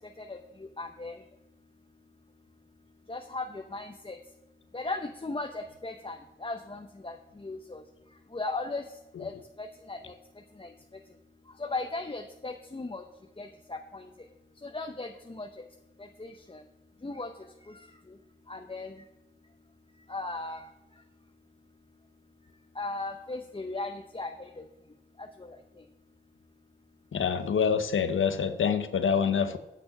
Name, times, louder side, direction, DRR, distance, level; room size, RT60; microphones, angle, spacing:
voice 1, 0.8-1.2 3.1-4.2 4.7-7.2 7.4-7.8 8.3-8.8 9.2-9.3 9.6-10.0 10.6-10.7 11.6-13.0 13.4-14.1 14.6-15.5 16.2-16.6 17.0-17.3 18.5-18.9 20.1-20.6 22.8-24.6, left 3 dB, 25° left, 4 dB, 0.8 m, -36 dB
voice 2, 27.1-29.6, left 6 dB, 85° left, 10 dB, 0.7 m, -26 dB
9.2 x 6.1 x 6.5 m, 1.0 s
cardioid pair, 50°, 20 cm